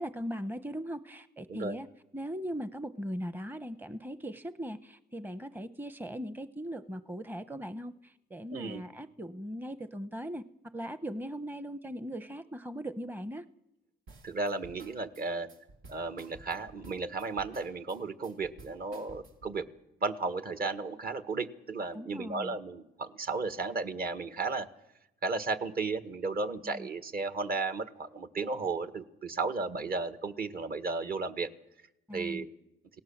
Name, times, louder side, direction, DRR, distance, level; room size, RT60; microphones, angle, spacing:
voice 1, 0.0-1.9 2.1-10.4 10.7-13.4 21.9-22.6 26.6-26.9 32.1-32.4, equal, 10° right, 12 dB, 0.9 m, -39 dB
voice 2, 8.5-8.8 14.2-15.5 15.9-19.7 20.0-24.7 25.2-31.5 32.1-32.5, right 3 dB, 50° right, 10 dB, 1.8 m, -34 dB
sound 1, 14.1-19.6, right 3 dB, 85° right, 3.2 m, -53 dB
29.5 x 18.0 x 7.3 m, 0.90 s
cardioid pair, 90°, 20 cm